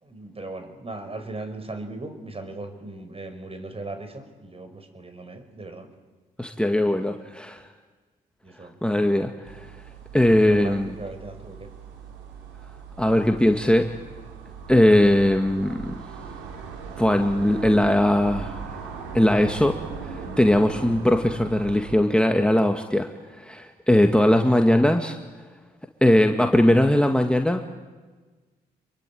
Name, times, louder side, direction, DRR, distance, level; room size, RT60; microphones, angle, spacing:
voice 1, 0.0-5.9 8.4-8.7 10.5-11.7, right 2 dB, 30° right, 8 dB, 5.5 m, -38 dB
voice 2, 6.4-7.6 8.8-9.7 10.1-10.9 13.0-13.9 14.7-16.0 17.0-18.8 19.1-19.8 20.4-23.1 23.4-25.2 26.0-27.6, left 1 dB, 5° left, 4 dB, 2.0 m, -20 dB
sound 1, 9.4-22.0, right 5 dB, 85° right, 3.9 m, -39 dB
27.0 x 22.5 x 9.3 m, 1.3 s
hypercardioid pair, 50°, 19 cm